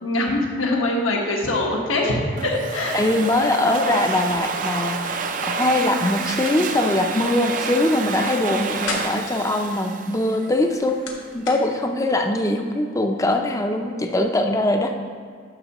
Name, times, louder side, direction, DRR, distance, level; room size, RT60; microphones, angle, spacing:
voice 1, 0.0-2.1 2.4-2.9, left 2 dB, 85° left, -1 dB, 1.3 m, -23 dB
Domestic sounds home sounds, 2.4-10.8, right 5 dB, 40° right, 0.4 m, -29 dB
voice 2, 2.9-11.0 11.3-14.9, left 1 dB, 15° left, 4 dB, 0.4 m, -22 dB
sound 1, 6.1-6.6 6.9-7.0 8.5-9.3 10.5-11.6, left 4 dB, 70° left, 1.2 m, -34 dB
10.5 x 6.3 x 3.0 m, 2.1 s
head